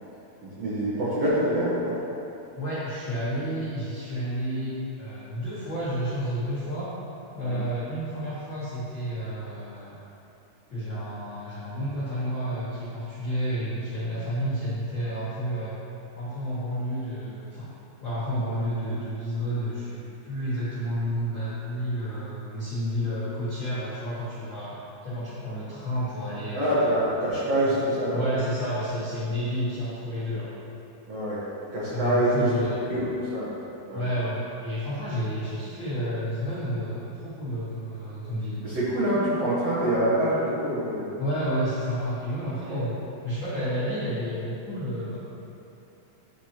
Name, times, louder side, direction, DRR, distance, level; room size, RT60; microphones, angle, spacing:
voice 1, 0.4-2.0 7.4-7.6 26.5-28.2 31.1-31.4 31.7-33.5 33.9-34.0 38.6-41.1 42.7-42.8, right 1 dB, 60° right, -11 dB, 1.7 m, -25 dB
voice 2, 2.6-6.9 7.3-10.0 10.7-15.7 16.1-17.7 18.0-20.0 20.2-24.8 25.0-26.9 28.1-30.5 31.9-32.8 33.9-38.6 41.2-42.9 43.2-45.2, equal, 70° left, -11 dB, 1.1 m, -30 dB
12.0 x 5.0 x 3.0 m, 2.8 s
omnidirectional pair, 4.6 m